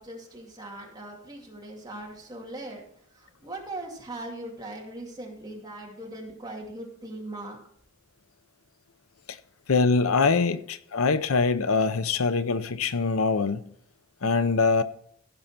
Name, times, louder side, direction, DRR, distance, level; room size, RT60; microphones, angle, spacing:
voice 1, 0.0-2.8 3.1-7.6, right 1 dB, 20° right, 2.5 m, -40 dB
voice 2, 9.7-13.6 14.2-14.8, left 4 dB, 80° left, 0.7 m, -23 dB
15.5 x 5.6 x 5.8 m
head